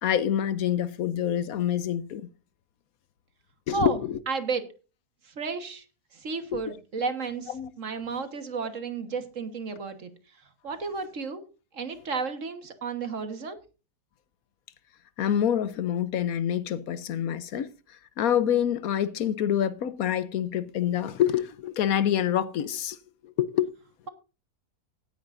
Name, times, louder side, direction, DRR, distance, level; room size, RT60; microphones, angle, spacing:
voice 1, 0.0-2.2 3.7-4.2 6.5-6.6 7.5-7.7 15.2-17.7 18.2-23.0 23.2-23.7, left 10 dB, 70° left, 1.1 m, -26 dB
voice 2, 4.3-4.7 5.2-5.8 6.1-7.5 7.8-10.1 10.6-11.4 11.7-13.6, right 4 dB, 55° right, 1.7 m, -32 dB
16.5 x 10.0 x 2.6 m
omnidirectional pair, 1.6 m